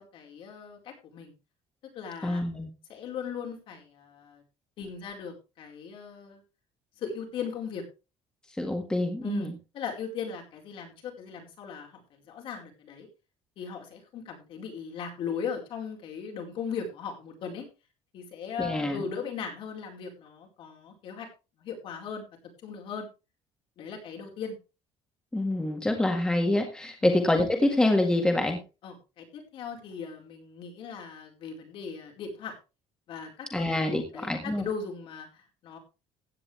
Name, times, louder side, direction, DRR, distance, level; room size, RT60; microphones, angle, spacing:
voice 1, 0.0-1.3 1.9-2.4 2.9-4.4 4.8-6.4 7.0-7.8 9.2-13.1 13.6-17.7 18.1-21.3 21.6-22.3 22.6-23.1 23.8-24.6 27.0-27.1 28.8-32.5 33.1-35.8, left 6 dB, 55° left, 1 dB, 4.6 m, -38 dB
voice 2, 2.2-2.7 8.6-9.5 18.6-19.0 25.3-28.6 33.5-34.7, left 1 dB, 5° left, 3 dB, 1.8 m, -26 dB
16.0 x 9.6 x 3.3 m, 0.30 s
cardioid pair, 170°, 11 cm